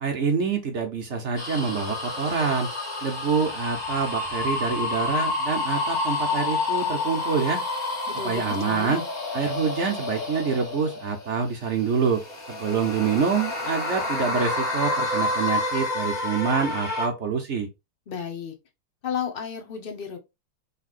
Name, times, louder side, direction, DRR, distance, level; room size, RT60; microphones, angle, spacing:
voice 1, 0.0-2.7 3.0-7.6 8.2-9.0 9.3-12.2 12.5-17.7, right 5 dB, 60° right, 0.7 m, -26 dB
sound 1, 1.4-11.3 11.8-17.1, left 3 dB, 25° left, 1.6 m, -29 dB
voice 2, 8.1-9.0 18.1-18.5 19.0-20.2, left 7 dB, 75° left, 0.5 m, -33 dB
5.5 x 3.4 x 2.4 m
omnidirectional pair, 2.3 m